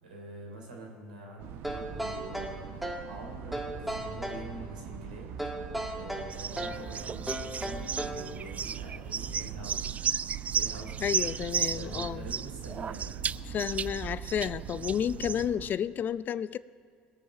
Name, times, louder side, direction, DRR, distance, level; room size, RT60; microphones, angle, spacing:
voice 1, 0.0-5.3 5.9-10.0 10.5-11.1 11.5-13.2, right 1 dB, 85° right, -1 dB, 3.1 m, -45 dB
sound 1, 1.4-15.7, right 9 dB, 60° right, 0.8 m, -42 dB
sound 2, 1.6-3.1 3.5-4.5 5.4-6.9 7.3-8.3, right 1 dB, 5° right, 1.7 m, -36 dB
sound 3, 6.3-15.5, right 7 dB, 30° right, 0.3 m, -34 dB
voice 2, 11.0-12.3 13.4-16.6, left 9 dB, 40° left, 18 dB, 0.4 m, -31 dB
20.0 x 7.7 x 5.7 m, 2.3 s
hypercardioid pair, 70°, 5 cm